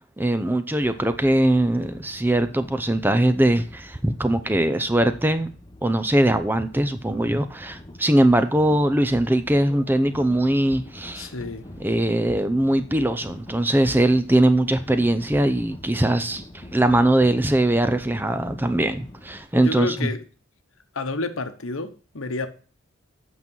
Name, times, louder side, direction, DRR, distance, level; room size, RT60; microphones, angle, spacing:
voice 1, 0.2-5.5 5.8-11.3 11.8-20.1, right 1 dB, 10° right, 0.5 m, -21 dB
sound 1, 0.8-19.5, left 1 dB, 20° left, 0.9 m, -44 dB
voice 2, 11.1-11.7 19.6-20.2 20.9-22.5, left 3 dB, 80° left, 1.1 m, -29 dB
8.5 x 6.0 x 5.4 m
head